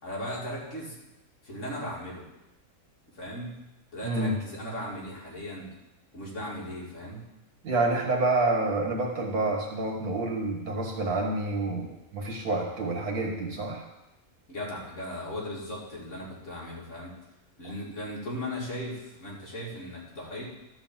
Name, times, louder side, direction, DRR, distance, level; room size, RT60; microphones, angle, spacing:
voice 1, 0.0-1.0 1.4-2.2 3.1-3.6 3.9-5.7 6.1-7.3 14.5-17.1 17.6-20.4, equal, 55° left, -4 dB, 2.6 m, -37 dB
voice 2, 4.0-4.3 7.6-13.8, right 2 dB, 85° right, 0 dB, 2.0 m, -28 dB
12.0 x 4.0 x 7.3 m, 0.96 s
omnidirectional pair, 1.6 m